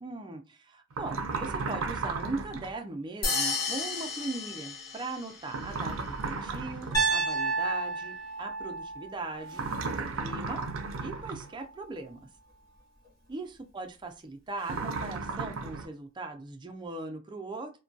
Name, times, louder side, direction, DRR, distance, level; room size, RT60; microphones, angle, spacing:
voice 1, 0.0-9.7 10.0-10.6 11.0-12.3 13.3-17.7, right 3 dB, 25° right, 4 dB, 0.4 m, -39 dB
sound 1, 0.9-2.7 5.5-7.1 9.5-11.5 14.6-15.9, right 4 dB, 90° right, 0.4 m, -34 dB
sound 2, 3.2-5.5, left 4 dB, 50° left, 0.7 m, -32 dB
Piano, 6.9-11.0, right 4 dB, 20° left, 0.8 m, -32 dB
2.6 x 2.2 x 2.3 m, 0.30 s
head